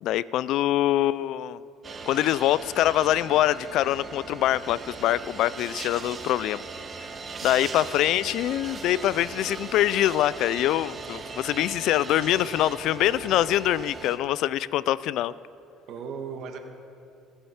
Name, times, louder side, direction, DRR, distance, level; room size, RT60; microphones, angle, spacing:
voice 1, 0.0-1.6 2.1-6.6 7.4-15.3, left 13 dB, 65° left, 19 dB, 0.3 m, -24 dB
sound 1, 1.8-14.2, right 4 dB, 30° right, 1.1 m, -39 dB
voice 2, 7.4-7.7 15.9-16.6, right 6 dB, 60° right, 4 dB, 1.6 m, -37 dB
16.0 x 8.8 x 7.2 m, 2.6 s
cardioid pair, 120°, 0 cm